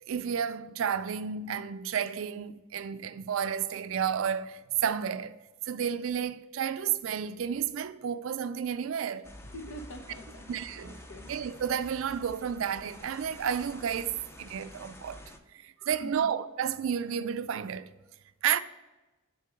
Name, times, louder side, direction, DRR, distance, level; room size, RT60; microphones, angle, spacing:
voice 1, 0.0-5.4 5.7-9.3 10.5-10.9 11.3-15.2 15.5-17.9 18.4-18.6, right 8 dB, 70° right, 0.4 m, -31 dB
sound 1, 9.2-15.4, equal, 15° left, 0.5 m, -49 dB
voice 2, 9.4-10.5 10.8-11.3 16.0-16.3, equal, 75° left, 1.0 m, -45 dB
6.6 x 4.3 x 4.9 m
head